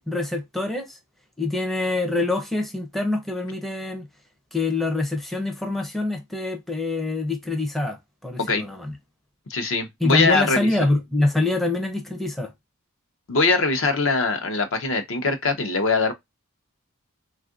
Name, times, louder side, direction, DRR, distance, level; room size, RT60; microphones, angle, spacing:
voice 1, 0.1-1.0 1.4-4.1 4.5-8.9 10.0-12.5, left 2 dB, ahead, 0.5 m, -25 dB
voice 2, 9.5-10.7 13.3-16.1, left 3 dB, 70° left, 0.7 m, -22 dB
3.5 x 2.4 x 2.3 m
head